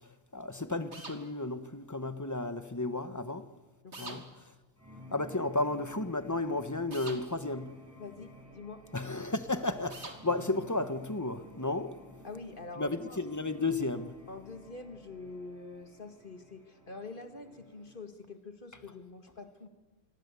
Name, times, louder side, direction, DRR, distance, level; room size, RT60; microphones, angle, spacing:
voice 1, 0.3-3.5 4.0-4.3 5.1-7.8 8.9-11.9 12.8-14.1, left 2 dB, 15° left, 1.2 m, -33 dB
sound 1, 0.9-1.2 3.9-4.2 6.9-7.2 9.9-10.2, right 2 dB, 50° right, 3.0 m, -43 dB
voice 2, 3.8-4.2 7.9-8.8 12.2-13.2 14.3-19.7, left 3 dB, 35° left, 2.0 m, -45 dB
sound 2, 4.8-18.0, left 1 dB, 10° right, 7.4 m, -54 dB
26.5 x 23.0 x 8.4 m
omnidirectional pair, 1.5 m